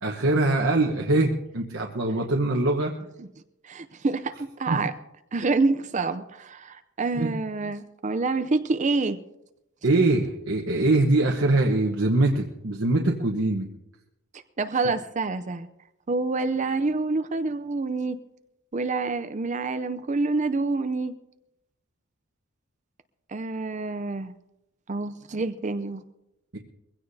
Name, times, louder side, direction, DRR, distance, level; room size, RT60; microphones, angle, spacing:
voice 1, 0.0-2.9 4.7-4.8 7.1-7.3 9.8-13.7 26.5-26.6, right 2 dB, 65° right, 0 dB, 1.1 m, -23 dB
voice 2, 3.6-4.9 5.3-9.2 14.3-15.7 16.1-18.2 18.7-21.1 23.3-24.3 24.9-26.0, right 3 dB, 35° right, 10 dB, 0.5 m, -27 dB
22.0 x 16.0 x 2.7 m, 0.88 s
head